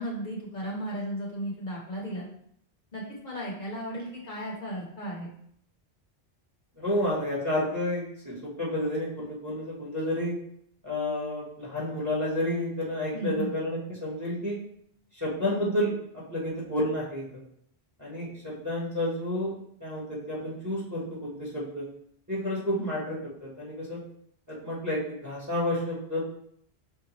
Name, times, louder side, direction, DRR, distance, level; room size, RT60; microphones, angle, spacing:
voice 1, 0.0-2.3 2.9-5.3 13.1-13.5 22.8-22.9, right 1 dB, 50° left, -4 dB, 1.0 m, -35 dB
voice 2, 6.8-10.3 10.8-14.6 15.1-15.9 16.3-17.3 18.0-19.5 19.8-21.8 22.3-24.0 24.5-26.3, left 1 dB, 20° right, -6 dB, 0.9 m, -30 dB
5.5 x 2.2 x 2.9 m, 0.68 s
omnidirectional pair, 1.1 m